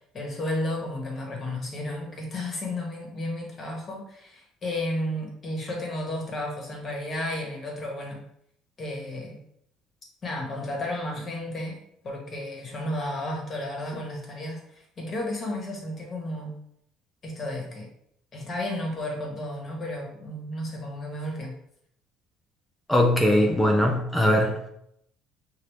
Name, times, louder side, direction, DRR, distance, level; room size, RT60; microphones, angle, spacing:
voice 1, 0.1-8.3 8.8-9.4 10.2-11.8 12.0-16.6 17.2-17.9 18.3-21.5, left 1 dB, 35° left, 0 dB, 1.4 m, -33 dB
voice 2, 22.9-24.7, left 1 dB, 10° left, 1 dB, 0.6 m, -21 dB
5.8 x 2.7 x 3.3 m, 0.72 s
cardioid pair, 125°, 0 cm